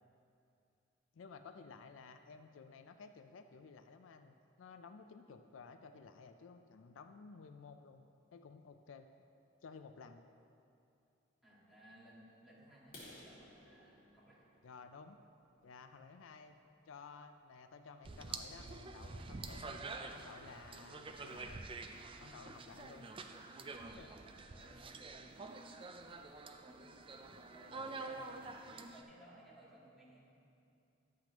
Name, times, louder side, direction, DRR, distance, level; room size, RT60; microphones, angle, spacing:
voice 1, 1.1-8.0 8.3-9.1 9.6-10.2 14.6-15.2 15.6-16.6 16.9-21.6 22.2-23.1 24.0-24.1, left 5 dB, 85° left, 8 dB, 0.4 m, -55 dB
voice 2, 11.4-14.5 23.9-25.4 26.7-26.8 27.4-30.2, right 1 dB, ahead, -9 dB, 2.1 m, -61 dB
sound 1, 12.8-16.6 17.1-17.3 17.8-17.9 18.3-18.4 18.8-18.9 19.3-19.4 19.6-20.1, left 1 dB, 50° left, 2.2 m, -59 dB
sound 2, 18.0-29.0, right 3 dB, 30° right, 0.4 m, -48 dB
11.5 x 7.6 x 3.0 m, 2.6 s
head